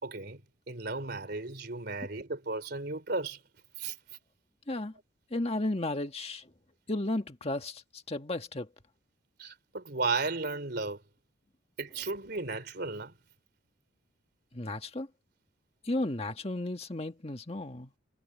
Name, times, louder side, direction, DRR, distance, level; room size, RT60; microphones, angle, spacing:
voice 1, 0.0-0.4 0.7-3.4 3.8-3.9 9.4-11.0 11.8-13.1, right 3 dB, 50° right, 3.8 m, -34 dB
voice 2, 5.3-6.5 6.9-8.7 14.5-15.1 15.8-17.9, left 2 dB, 30° left, 1.7 m, -34 dB
head